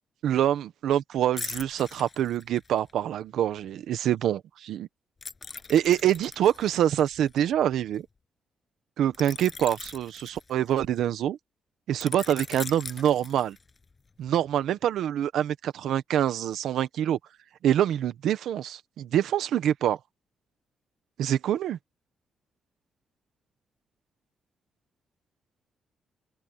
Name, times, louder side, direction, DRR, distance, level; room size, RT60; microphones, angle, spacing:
voice 1, 0.2-4.9 5.7-8.1 9.0-11.4 11.9-13.6 14.2-17.2 17.6-20.0 21.2-21.8, right 11 dB, 85° right, 1.4 m, -25 dB
sound 1, 1.4-2.9 5.2-8.0 9.1-11.0 12.0-13.8 14.3-14.5, left 4 dB, 25° left, 7.7 m, -41 dB
open air
cardioid pair, 145°, 0 cm